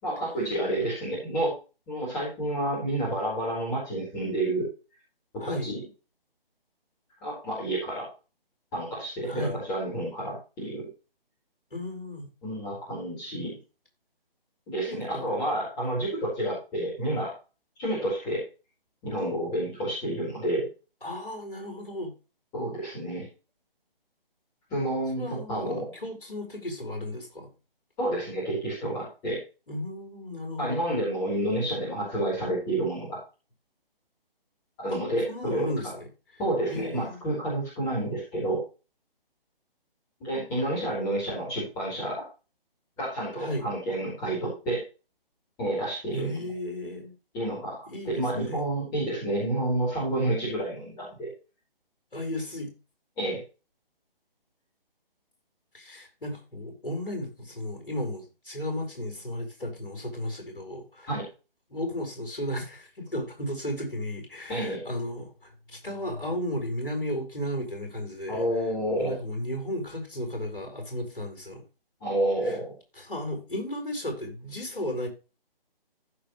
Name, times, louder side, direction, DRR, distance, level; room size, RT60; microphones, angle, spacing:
voice 1, 0.0-1.5 1.9-4.7 5.3-5.8 7.2-8.1 8.7-10.9 12.4-13.6 14.7-17.3 17.8-18.4 19.0-20.7 22.5-23.3 24.7-25.9 28.0-29.4 30.6-33.2 34.8-35.7 36.4-38.6 40.2-42.2 43.0-44.8 45.6-46.4 47.3-51.3 53.2-53.4 61.1-61.2 64.5-64.8 68.3-69.1 72.0-72.7, right 1 dB, 10° left, 4.3 m, -29 dB
voice 2, 5.4-5.7 9.2-9.6 11.7-12.3 14.9-15.3 21.0-22.1 25.2-27.5 29.7-30.8 34.9-35.0 35.3-36.1 36.7-37.2 43.3-43.7 46.1-47.1 47.9-48.6 52.1-52.7 55.7-61.1 61.7-68.4 69.0-71.6 72.4-72.6 73.0-75.1, left 1 dB, 65° left, 4.8 m, -34 dB
15.0 x 5.2 x 3.2 m
figure-of-eight pair, 150°, 29 cm